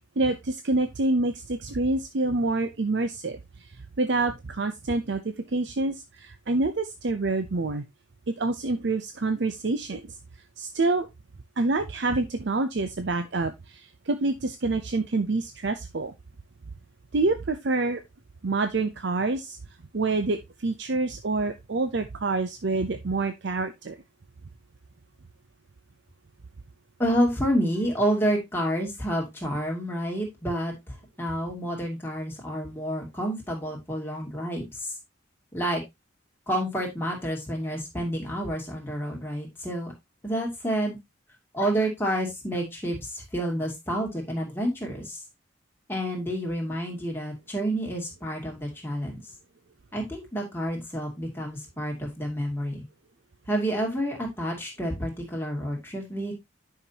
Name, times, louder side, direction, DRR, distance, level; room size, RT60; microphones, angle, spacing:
voice 1, 0.2-7.8 8.3-10.1 10.6-11.1 11.6-16.1 17.1-18.0 18.4-19.6 19.9-24.0, right 3 dB, 60° right, 8 dB, 0.6 m, -27 dB
voice 2, 27.0-34.9 35.5-35.8 36.5-39.9 40.2-41.0 41.5-45.2 45.9-49.2 49.9-52.8 53.5-56.3, equal, 10° left, -1 dB, 2.5 m, -29 dB
9.9 x 5.8 x 2.8 m, 0.20 s
head